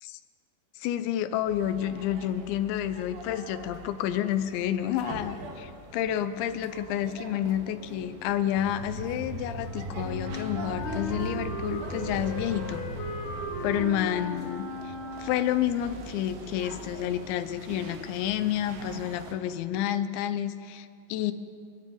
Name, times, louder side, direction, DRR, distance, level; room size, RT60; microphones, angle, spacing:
voice 1, 0.8-12.9 13.6-21.3, left 11 dB, 80° left, 11 dB, 2.7 m, -30 dB
sound 1, 1.5-19.4, right 3 dB, 80° right, 4.7 m, -44 dB
sound 2, 8.5-13.8, right 1 dB, 50° right, 6.1 m, -38 dB
Wind instrument woodwind instrument, 10.0-15.8, left 1 dB, 50° left, 3.2 m, -37 dB
24.5 x 13.5 x 9.2 m, 2.4 s
omnidirectional pair, 5.9 m